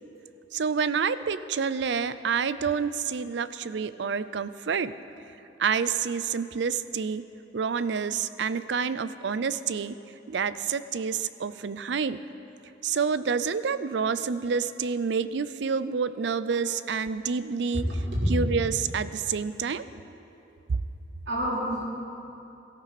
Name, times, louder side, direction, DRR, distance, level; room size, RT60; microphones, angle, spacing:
voice 1, 0.5-4.9 5.6-7.2 7.5-9.9 10.3-12.2 12.8-17.9 18.3-19.8, right 6 dB, 70° right, 15 dB, 0.5 m, -28 dB
voice 2, 17.7-18.3 21.3-21.8, equal, 90° right, -5 dB, 3.6 m, -28 dB
17.5 x 13.5 x 4.2 m, 2.9 s
head